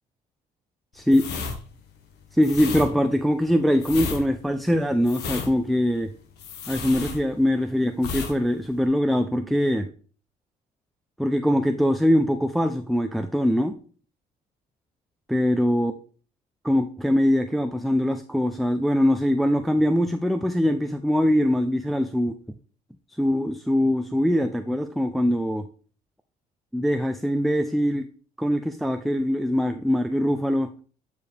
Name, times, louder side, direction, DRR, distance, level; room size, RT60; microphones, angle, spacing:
voice 1, 0.9-1.3 2.3-6.1 6.7-9.9 11.2-13.7 15.3-15.9 16.6-22.4 23.2-25.6 26.7-28.1 28.4-30.7, equal, ahead, 6 dB, 0.4 m, -22 dB
sound 1, 1.1-7.6 8.0-8.4 8.6-8.9, left 5 dB, 80° left, 1.4 m, -33 dB
9.2 x 4.8 x 3.3 m, 0.41 s
cardioid pair, 110°, 17 cm